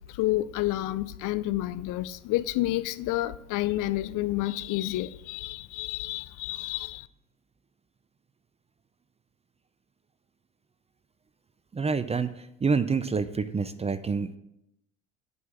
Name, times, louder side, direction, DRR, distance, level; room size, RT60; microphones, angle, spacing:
voice 1, 0.1-7.1, left 16 dB, 55° left, 0.6 m, -29 dB
voice 2, 11.7-14.4, right 5 dB, 15° right, 0.5 m, -27 dB
9.6 x 5.5 x 7.1 m
hypercardioid pair, 75°, 38 cm